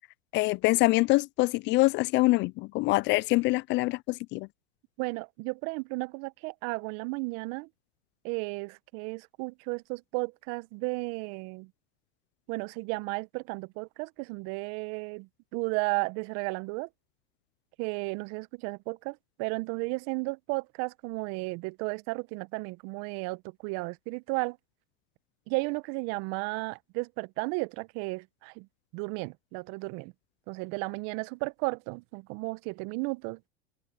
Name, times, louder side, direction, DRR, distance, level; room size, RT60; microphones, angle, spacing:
voice 1, 0.3-4.5, left 22 dB, 35° left, 0.4 m, -25 dB
voice 2, 5.0-7.7 8.2-11.7 12.5-16.9 17.8-24.6 25.5-28.7 28.9-30.1 30.5-33.4, right 28 dB, 50° right, 1.4 m, -34 dB
hypercardioid pair, 100°, 32 cm